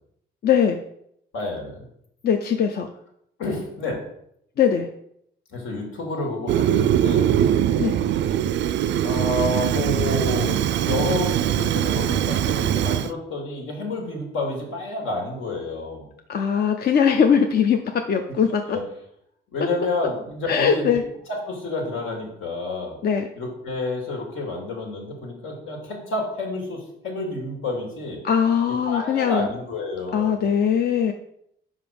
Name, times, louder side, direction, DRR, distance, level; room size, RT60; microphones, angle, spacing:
voice 1, 0.4-0.8 2.2-2.9 4.6-4.9 7.8-8.0 16.3-18.8 20.5-21.0 23.0-23.3 28.2-29.5 30.1-31.1, left 7 dB, 55° left, 5 dB, 0.6 m, -20 dB
voice 2, 1.3-1.8 3.4-4.0 5.5-7.3 9.0-16.1 18.7-18.8 19.5-20.9 21.3-23.0 23.4-28.2 28.9-30.4, left 2 dB, 80° left, 0 dB, 2.4 m, -29 dB
Fire, 6.5-13.1, right 10 dB, 70° right, 0.4 m, -22 dB
5.6 x 5.0 x 5.2 m, 0.73 s
cardioid pair, 90°, 20 cm